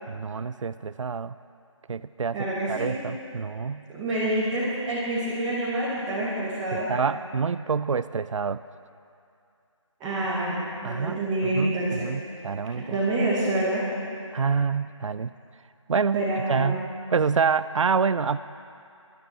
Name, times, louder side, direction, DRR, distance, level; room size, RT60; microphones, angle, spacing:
voice 1, 0.1-1.4 1.9-3.8 6.7-8.6 10.8-11.2 11.5-13.0 14.3-15.3 15.9-16.2 16.5-18.4, right 5 dB, 70° right, 14 dB, 0.4 m, -27 dB
voice 2, 2.3-3.0 3.9-6.9 10.0-12.1 12.7-13.9 16.1-16.8, right 1 dB, 5° right, -11 dB, 1.2 m, -27 dB
20.0 x 12.0 x 4.1 m, 2.6 s
figure-of-eight pair, 165°, 16 cm